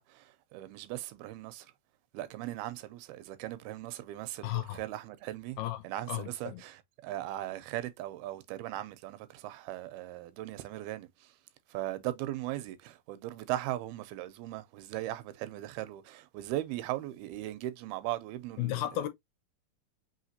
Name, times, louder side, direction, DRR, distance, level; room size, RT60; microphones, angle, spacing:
voice 1, 0.0-1.7 2.1-5.6 5.8-11.3 11.7-18.8, right 14 dB, 85° right, 2.4 m, -38 dB
voice 2, 4.4-4.8 5.6-5.8 6.1-6.6 18.6-19.1, left 14 dB, 80° left, 2.3 m, -33 dB
5.7 x 2.9 x 2.7 m
omnidirectional pair, 4.4 m